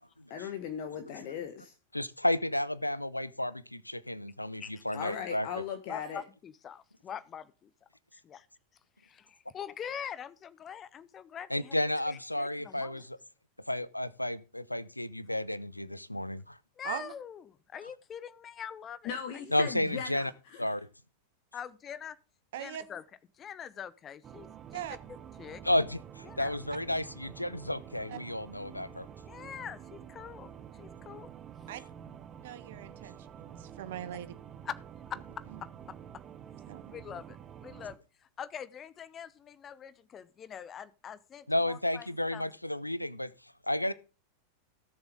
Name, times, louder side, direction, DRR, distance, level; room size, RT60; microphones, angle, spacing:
voice 1, 0.3-1.7 4.9-6.2 19.0-20.7, left 7 dB, 45° left, 1.5 m, -38 dB
voice 2, 1.9-5.5 11.5-13.2 13.7-16.6 19.5-20.3 20.6-20.9 25.6-29.1 41.5-43.3 43.7-43.9, left 1 dB, 85° left, 0.6 m, -32 dB
voice 3, 4.6-5.0 5.9-7.7 8.1-8.5 9.0-11.7 12.1-13.0 16.8-19.5 21.5-22.2 22.6-23.0 23.4-24.8 25.4-25.6 26.2-26.6 29.2-31.3 34.6-34.8 35.1-36.0 36.9-42.5, left 8 dB, 25° left, 0.8 m, -44 dB
voice 4, 22.5-22.8 24.7-25.0 28.1-28.2 31.7-31.8 32.4-34.3 36.7-36.8, right 11 dB, 55° right, 1.2 m, -40 dB
sound 1, 24.2-38.0, right 8 dB, 25° right, 1.0 m, -49 dB
17.0 x 7.1 x 3.6 m
figure-of-eight pair, 90°, 0 cm